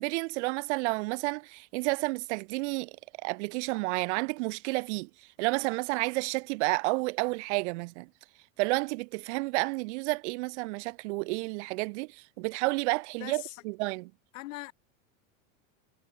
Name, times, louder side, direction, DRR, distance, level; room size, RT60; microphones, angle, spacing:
voice 1, 0.0-3.0 3.2-5.1 5.4-8.1 8.6-14.0, right 26 dB, 60° right, 0.5 m, -31 dB
voice 2, 13.2-13.6 14.3-14.7, left 19 dB, 75° left, 2.4 m, -41 dB
supercardioid pair, 145°, 39 cm